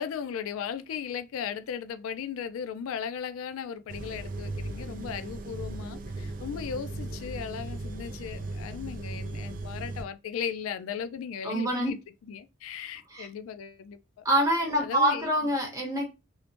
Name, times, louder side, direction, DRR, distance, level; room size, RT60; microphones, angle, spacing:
voice 1, 0.0-12.0 12.3-14.2 14.8-15.5, left 7 dB, 90° left, 0.3 m, -37 dB
sound 1, 3.9-10.0, right 2 dB, 40° right, 0.3 m, -37 dB
voice 2, 11.4-11.9 13.1-13.3 14.2-16.0, right 1 dB, 15° right, 0.8 m, -26 dB
2.7 x 2.0 x 2.9 m
head